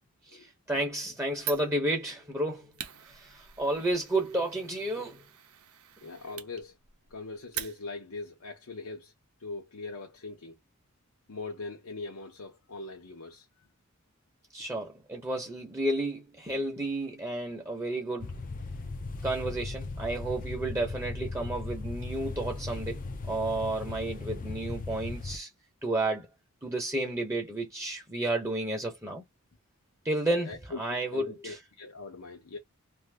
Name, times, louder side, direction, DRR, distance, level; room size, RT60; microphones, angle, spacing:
voice 1, 0.3-2.8 3.1-5.2 14.5-18.4 19.2-23.0 23.3-25.5 25.8-26.3 26.6-29.2 30.0-31.6, right 1 dB, 15° right, 0.8 m, -31 dB
Fire, 1.4-8.2, right 9 dB, 75° right, 0.7 m, -44 dB
voice 2, 6.0-6.8 7.1-9.1 9.4-10.6 11.3-13.5 30.5-32.6, left 3 dB, 75° left, 0.8 m, -41 dB
sound 1, 18.2-25.4, left 3 dB, 35° left, 0.5 m, -37 dB
2.7 x 2.6 x 3.3 m
head